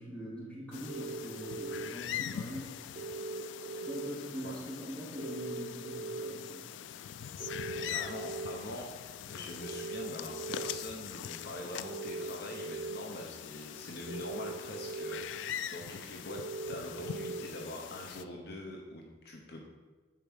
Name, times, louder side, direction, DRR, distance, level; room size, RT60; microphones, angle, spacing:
voice 1, 0.0-2.8 3.7-6.7, equal, 5° left, -8 dB, 2.6 m, -43 dB
sound 1, 0.7-18.2, left 9 dB, 90° left, 0.3 m, -43 dB
sound 2, 0.9-1.9 3.0-4.1 5.2-6.3 7.4-8.5 9.6-10.8 11.8-13.0 14.1-15.2 16.3-17.4, right 3 dB, 40° right, 1.1 m, -40 dB
voice 2, 7.8-8.9 9.3-19.6, left 1 dB, 60° left, 1 dB, 0.8 m, -44 dB
6.8 x 4.7 x 6.3 m, 1.3 s
head